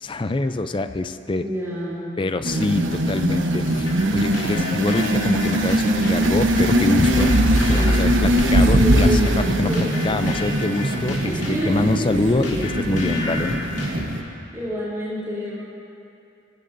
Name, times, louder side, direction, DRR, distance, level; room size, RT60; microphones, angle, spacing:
voice 1, 0.0-1.5 2.2-7.3 7.7-11.4 11.7-13.6, left 2 dB, 25° left, 10 dB, 0.4 m, -25 dB
voice 2, 1.4-2.2 7.7-8.2 8.8-10.6 11.2-12.9 14.1-14.3 14.5-15.6, equal, 15° right, -9 dB, 3.3 m, -29 dB
Power Up Power Down, 2.4-14.2, right 1 dB, 80° right, 1.1 m, -21 dB
sound 1, 3.7-14.5, left 2 dB, 65° left, 2.8 m, -33 dB
23.0 x 14.5 x 2.6 m, 2.6 s
head